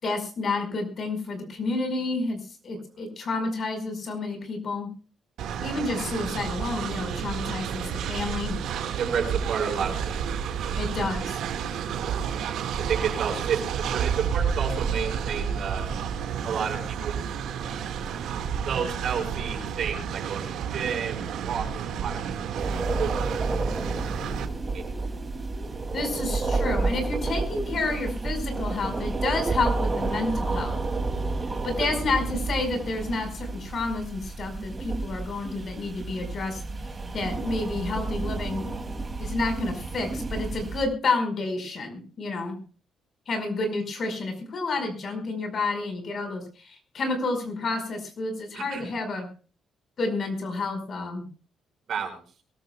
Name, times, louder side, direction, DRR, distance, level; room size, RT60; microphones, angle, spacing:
voice 1, 0.0-4.9 5.6-8.6 10.8-11.4 25.9-30.8 31.6-36.6 37.1-38.7 39.2-42.6 43.3-49.3 50.0-51.3, left 3 dB, 50° left, 5 dB, 5.1 m, -30 dB
Train, 5.4-24.5, right 7 dB, 80° right, 1.9 m, -30 dB
voice 2, 9.0-10.3 12.7-15.9 16.4-17.5 18.7-23.6 24.0-24.4 24.7-24.8 31.8-31.9 48.5-48.9 51.9-52.2, right 7 dB, 65° right, 4 dB, 5.7 m, -31 dB
sound 1, 22.6-40.9, right 3 dB, 25° right, 2.8 m, -30 dB
23.0 x 13.5 x 2.4 m, 0.38 s
cardioid pair, 90°, 0 cm